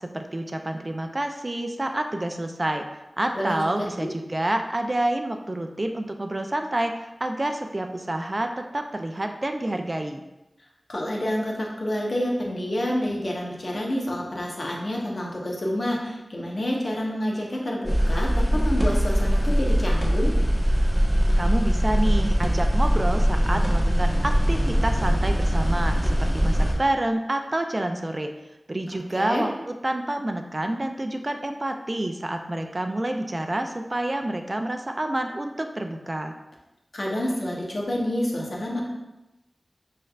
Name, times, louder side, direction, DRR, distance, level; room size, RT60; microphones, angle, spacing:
voice 1, 0.0-2.8 3.2-10.2 21.4-28.3 28.7-36.3, right 1 dB, 35° right, 5 dB, 0.4 m, -28 dB
voice 2, 3.3-4.1 10.9-20.3 29.1-29.5 36.9-38.8, left 1 dB, 60° left, -2 dB, 1.0 m, -28 dB
sound 1, 17.8-26.7, equal, 10° left, 1.1 m, -21 dB
6.4 x 3.2 x 2.4 m, 0.96 s
wide cardioid pair, 65°, 0 cm